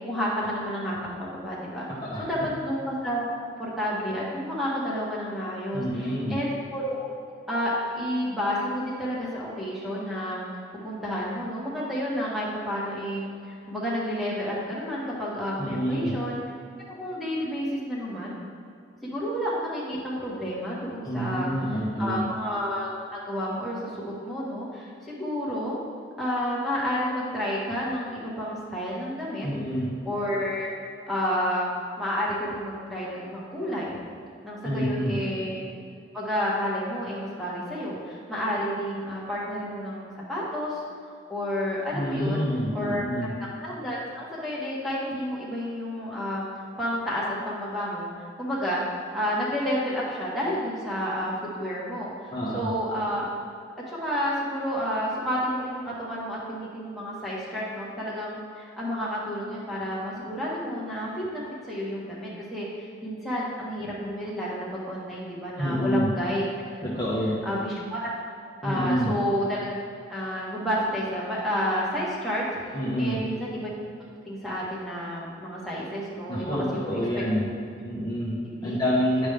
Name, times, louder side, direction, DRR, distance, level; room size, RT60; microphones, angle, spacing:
voice 1, 0.0-1.9 2.2-3.2 3.6-7.1 7.5-10.4 10.8-16.4 16.9-18.4 19.0-25.8 26.2-29.5 30.0-30.7 31.1-31.7 32.0-34.0 34.4-35.6 36.1-40.8 41.3-42.5 42.7-43.0 43.6-46.4 46.8-48.1 48.4-48.8 49.1-53.2 53.9-61.4 61.7-66.7 67.4-68.1 68.6-69.7 70.1-73.8 74.2-77.2 78.6-78.8, equal, ahead, -7 dB, 1.5 m, -30 dB
voice 2, 5.7-6.4 15.6-16.1 21.0-22.2 29.4-29.9 34.6-35.2 41.9-43.3 52.3-52.7 65.6-66.1 66.8-67.4 68.6-69.2 72.7-73.2 76.3-77.5 77.8-79.3, equal, 20° left, -8 dB, 1.1 m, -27 dB
10.0 x 5.2 x 3.4 m, 2.4 s
head